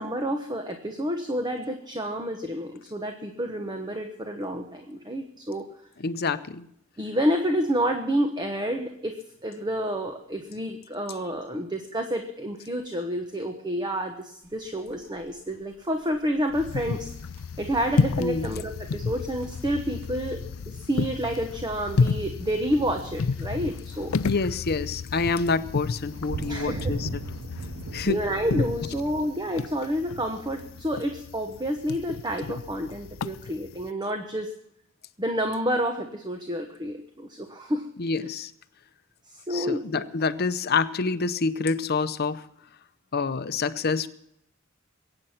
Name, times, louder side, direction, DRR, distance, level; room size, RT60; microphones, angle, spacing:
voice 1, 0.0-5.6 7.0-9.1 9.4-17.1 17.6-20.4 20.7-24.1 26.5-26.9 28.1-34.5 35.2-37.8 39.3-40.0, equal, 20° right, 5 dB, 1.1 m, -29 dB
voice 2, 6.0-6.7 18.2-18.5 24.2-27.2 27.9-28.2 38.0-38.5 39.5-42.5 43.1-44.1, left 4 dB, 50° left, 13 dB, 0.7 m, -27 dB
sound 1, 14.4-30.8, right 4 dB, 60° right, 0.5 m, -42 dB
sound 2, 16.5-33.9, left 4 dB, 85° left, 0.5 m, -32 dB
22.0 x 8.9 x 5.8 m, 0.75 s
head